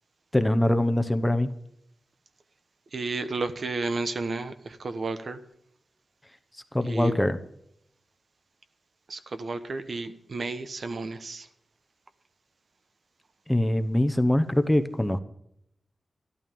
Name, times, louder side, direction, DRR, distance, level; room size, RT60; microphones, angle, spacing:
voice 1, 0.3-1.5 6.7-7.4 13.5-15.2, left 1 dB, 5° left, 10 dB, 0.9 m, -23 dB
voice 2, 2.9-5.4 6.8-7.2 9.1-11.5, right 3 dB, 55° right, 10 dB, 1.0 m, -32 dB
13.0 x 12.0 x 5.3 m, 0.74 s
wide cardioid pair, 135°, 0 cm